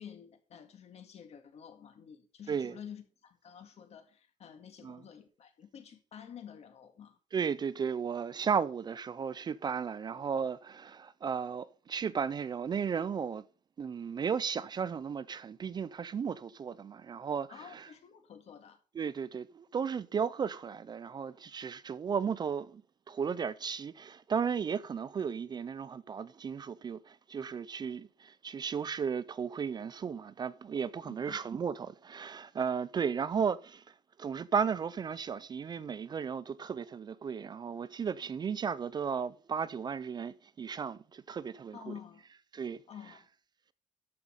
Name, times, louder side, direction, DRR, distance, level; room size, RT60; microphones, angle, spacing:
voice 1, 0.0-7.2 17.5-18.8 31.1-31.4 41.7-42.2 42.9-43.3, left 8 dB, 55° left, 2.0 m, -50 dB
voice 2, 7.3-13.4 13.8-17.9 18.9-22.8 23.1-41.9 42.5-42.8, right 6 dB, 35° right, 0.4 m, -35 dB
13.0 x 5.6 x 5.2 m
cardioid pair, 145°, 13 cm